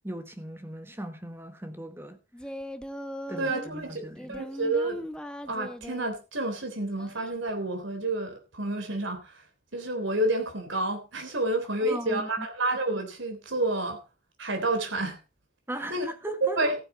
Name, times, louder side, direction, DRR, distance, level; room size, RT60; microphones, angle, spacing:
voice 1, 0.0-2.2 3.3-4.4 11.8-12.5 15.7-16.6, right 1 dB, 10° right, 1.3 m, -38 dB
Singing, 2.3-3.7 4.2-6.2 7.0-7.5, equal, 5° left, 0.8 m, -39 dB
voice 2, 3.4-5.1 5.5-9.3 9.7-14.0 14.4-15.2 15.9-16.1 16.4-16.8, right 2 dB, 75° right, 3.7 m, -29 dB
14.5 x 9.1 x 4.3 m
head